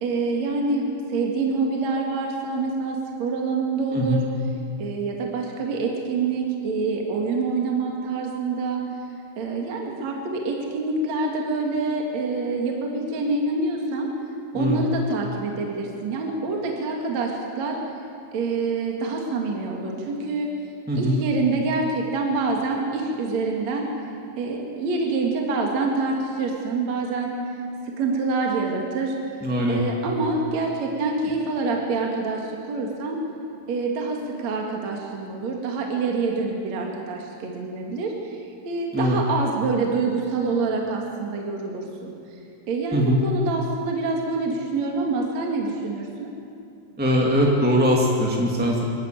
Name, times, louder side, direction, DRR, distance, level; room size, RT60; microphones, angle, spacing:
voice 1, 0.0-4.2 4.8-8.8 9.4-14.1 14.5-17.8 18.3-20.5 21.0-23.9 24.4-27.4 27.8-29.2 29.7-33.2 33.7-38.4 38.6-42.1 42.7-46.3, right 3 dB, 50° right, 0 dB, 3.1 m, -26 dB
voice 2, 3.9-4.2 14.5-14.8 20.9-21.2 29.4-29.8 38.9-39.2 42.9-43.2 47.0-48.8, equal, 5° right, -1 dB, 1.1 m, -21 dB
24.5 x 15.0 x 9.2 m, 2.6 s
omnidirectional pair, 4.6 m